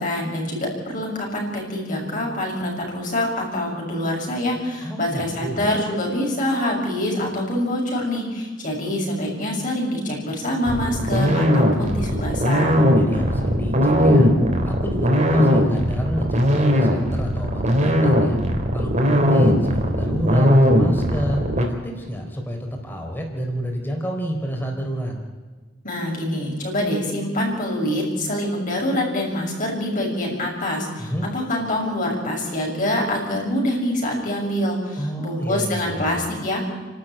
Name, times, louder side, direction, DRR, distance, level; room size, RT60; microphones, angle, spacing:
voice 1, 0.0-12.8 25.8-36.7, left 1 dB, 45° left, -2 dB, 6.6 m, -25 dB
voice 2, 4.8-5.6 13.0-14.3 14.6-18.4 18.7-25.1 31.0-31.3 34.9-36.2, equal, 10° left, 1 dB, 4.1 m, -29 dB
sound 1, 10.7-21.6, equal, 40° right, 3.5 m, -18 dB
30.0 x 12.5 x 9.0 m, 1.4 s
head